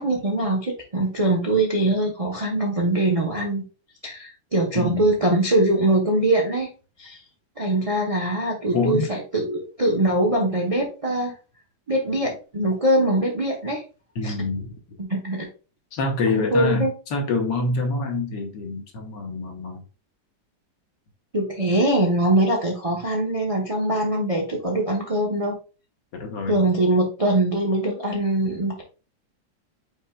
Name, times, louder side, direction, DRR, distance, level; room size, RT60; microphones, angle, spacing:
voice 1, 0.0-3.6 4.0-6.7 7.0-7.2 7.6-11.3 11.9-13.8 14.2-14.3 15.0-15.5 16.3-16.9 21.3-25.5 26.5-28.8, right 1 dB, 60° right, -1 dB, 0.3 m, -22 dB
voice 2, 4.7-5.1 8.7-9.1 14.1-14.8 15.9-19.8 26.1-26.6, left 3 dB, 70° left, 3 dB, 1.7 m, -26 dB
5.4 x 4.3 x 2.2 m, 0.34 s
omnidirectional pair, 2.1 m